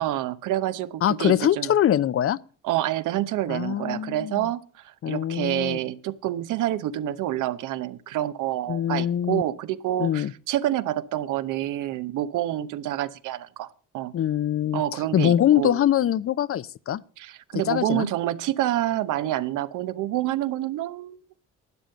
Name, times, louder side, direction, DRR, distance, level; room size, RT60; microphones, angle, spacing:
voice 1, 0.0-1.7 2.6-13.7 13.9-14.1 14.7-15.8 17.2-21.4, right 13 dB, 90° right, 0.9 m, -28 dB
voice 2, 1.0-2.4 3.5-4.5 5.0-5.8 8.7-9.4 10.0-10.3 14.1-14.8 15.1-17.0 17.7-18.1, left 11 dB, 50° left, 0.5 m, -23 dB
12.0 x 9.0 x 6.6 m
cardioid pair, 90°, 30 cm